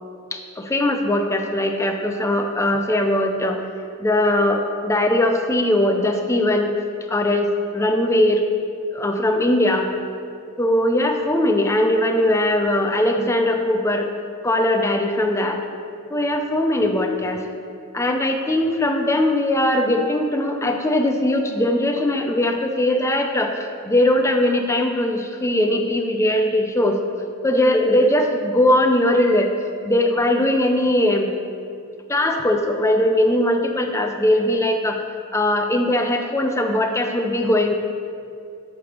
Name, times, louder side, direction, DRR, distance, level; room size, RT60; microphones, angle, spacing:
voice 1, 0.3-3.6 4.0-6.7 7.1-8.4 8.9-9.9 10.6-14.1 14.4-15.6 16.1-17.4 17.9-27.0 27.4-29.5 29.8-31.3 32.1-35.0 35.3-37.7, left 1 dB, 15° left, 4 dB, 0.4 m, -20 dB
8.8 x 3.3 x 5.2 m, 2.5 s
head